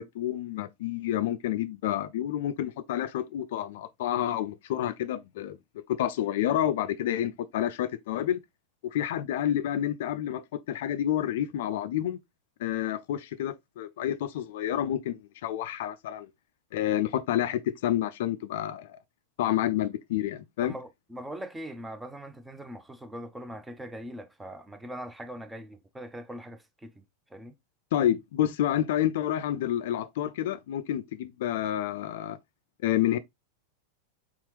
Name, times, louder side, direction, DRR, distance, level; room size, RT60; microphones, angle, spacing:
voice 1, 0.0-8.4 8.9-12.2 12.6-16.3 16.7-19.0 19.4-20.7 27.9-32.4 32.8-33.2, left 11 dB, 55° left, 0.4 m, -29 dB
voice 2, 20.6-27.0 27.3-27.6, right 1 dB, 10° right, 0.6 m, -41 dB
4.3 x 3.5 x 3.1 m
figure-of-eight pair, 90°, 0 cm